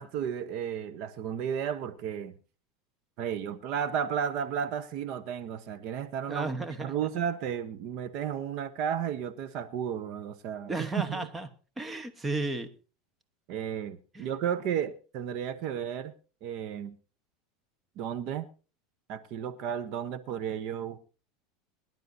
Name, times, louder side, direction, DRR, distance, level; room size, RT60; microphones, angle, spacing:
voice 1, 0.0-2.3 3.2-6.5 6.8-10.7 11.1-11.2 13.5-16.1 16.4-17.0 18.0-18.5 19.1-21.0, right 8 dB, 55° right, 0.9 m, -33 dB
voice 2, 6.3-7.1 10.7-11.5 11.8-12.7 14.1-14.3, right 2 dB, 15° right, 1.1 m, -34 dB
22.5 x 11.0 x 2.7 m
supercardioid pair, 135°, 0 cm